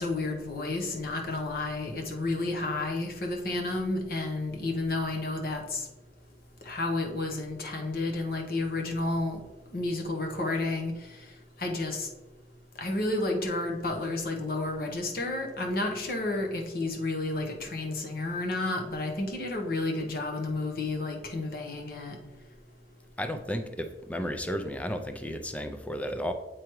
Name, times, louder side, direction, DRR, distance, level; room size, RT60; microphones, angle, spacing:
voice 1, 0.0-5.9 6.6-9.4 9.7-10.9 11.6-12.1 12.8-22.2, left 2 dB, 55° left, 2 dB, 0.9 m, -31 dB
voice 2, 23.2-26.3, equal, 10° left, 7 dB, 0.4 m, -33 dB
7.7 x 4.7 x 3.0 m, 1.1 s
head